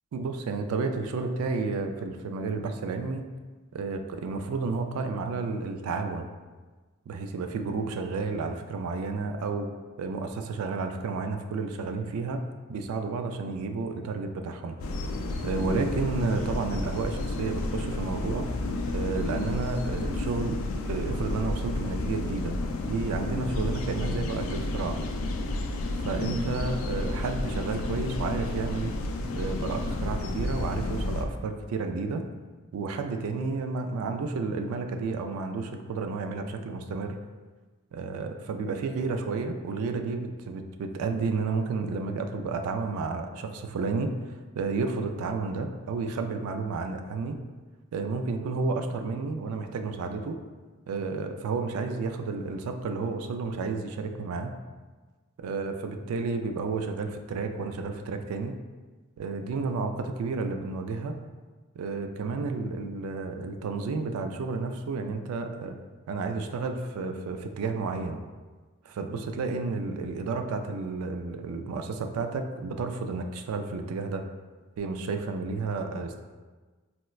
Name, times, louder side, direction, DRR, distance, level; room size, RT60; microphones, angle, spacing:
voice 1, 0.1-3.3 3.7-6.3 7.1-9.7 10.0-14.8 15.4-18.5 18.9-22.5 22.9-25.0 26.0-28.9 29.3-32.3 32.7-37.2 37.9-44.2 44.6-47.4 47.9-50.4 50.9-54.6 55.4-58.5 59.2-61.2 61.8-65.8 66.1-68.2 68.9-74.2 74.8-76.2, right 4 dB, 90° right, 6 dB, 0.3 m, -31 dB
sound 1, 14.8-31.2, left 2 dB, 65° left, 0.3 m, -31 dB
4.2 x 2.0 x 2.3 m, 1.3 s
head